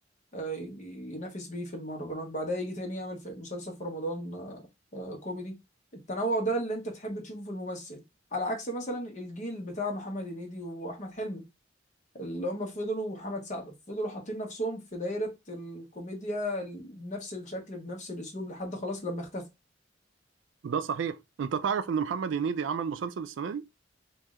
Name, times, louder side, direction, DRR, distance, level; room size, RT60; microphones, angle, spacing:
voice 1, 0.3-4.6 4.9-5.5 6.1-8.0 8.3-11.4 12.1-19.4, equal, 40° left, 1.1 m, -35 dB
voice 2, 20.6-23.6, right 6 dB, 70° right, 0.4 m, -31 dB
3.1 x 2.6 x 3.6 m
head